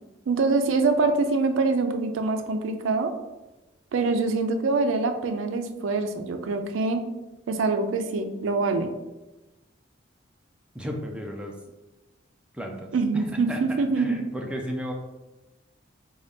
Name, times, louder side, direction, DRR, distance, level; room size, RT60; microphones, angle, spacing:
voice 1, 0.3-3.1 3.9-7.0 7.5-8.9 12.9-14.1, right 3 dB, 85° right, 7 dB, 0.4 m, -24 dB
voice 2, 10.7-11.6 12.5-14.9, equal, 5° right, 0 dB, 0.4 m, -34 dB
3.8 x 2.3 x 3.4 m, 1.0 s
head